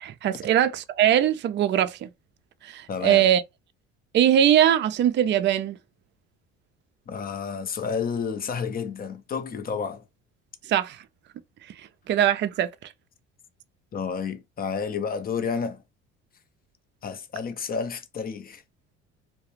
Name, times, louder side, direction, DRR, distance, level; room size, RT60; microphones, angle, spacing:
voice 1, 0.0-2.1 2.6-3.4 4.1-5.8 10.7-11.0 12.1-12.7, right 10 dB, 35° right, 0.4 m, -21 dB
voice 2, 2.9-3.3 7.1-10.0 13.9-15.8 17.0-18.6, left 6 dB, 30° left, 0.5 m, -30 dB
2.3 x 2.1 x 3.0 m
hypercardioid pair, 65°, 32 cm